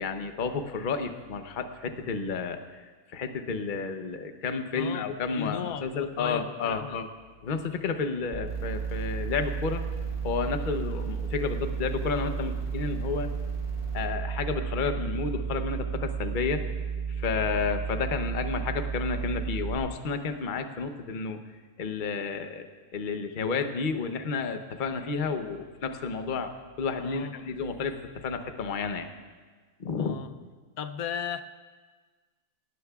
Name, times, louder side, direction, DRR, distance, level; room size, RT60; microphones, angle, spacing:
voice 1, 0.0-2.9 3.1-7.1 7.4-9.8 10.2-13.3 13.9-16.6 17.2-21.4 21.8-22.7 22.9-29.1 29.8-30.2, left 5 dB, 40° left, 7 dB, 0.9 m, -31 dB
voice 2, 4.7-7.0 27.0-27.4 30.0-30.3 30.8-31.4, left 8 dB, 80° left, 9 dB, 1.1 m, -36 dB
sound 1, 8.3-19.8, right 6 dB, 30° right, 2.8 m, -33 dB
sound 2, 8.5-14.0, left 1 dB, 20° left, 4.1 m, -45 dB
21.5 x 18.0 x 2.4 m, 1.4 s
omnidirectional pair, 1.5 m